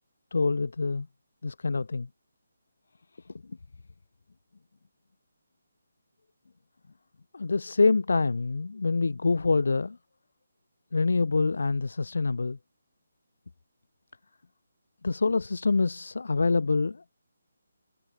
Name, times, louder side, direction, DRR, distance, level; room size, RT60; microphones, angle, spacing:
voice 1, 0.3-1.1 1.4-2.1 7.3-10.0 10.9-12.6 15.0-17.1, left 3 dB, 75° left, 0.4 m, -26 dB
hypercardioid pair, 165°, 0 cm